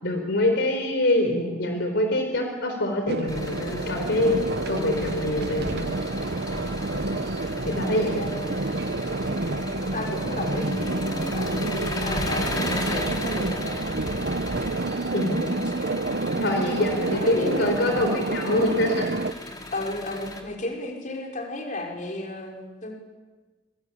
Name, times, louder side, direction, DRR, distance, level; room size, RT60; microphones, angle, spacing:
voice 1, 0.0-4.4 4.7-5.9 7.7-8.2 15.1-15.4 16.4-19.0, left 1 dB, 65° left, 4 dB, 4.4 m, -25 dB
sound 1, 3.1-19.3, right 2 dB, 55° right, 1.0 m, -29 dB
Engine, 3.3-20.4, left 1 dB, 20° left, 4.0 m, -35 dB
voice 2, 7.9-8.5 9.3-9.7 9.9-11.8 12.0-13.8 17.1-17.8 19.7-22.9, left 1 dB, 45° left, 1 dB, 5.7 m, -33 dB
27.0 x 25.0 x 8.8 m, 1.3 s
head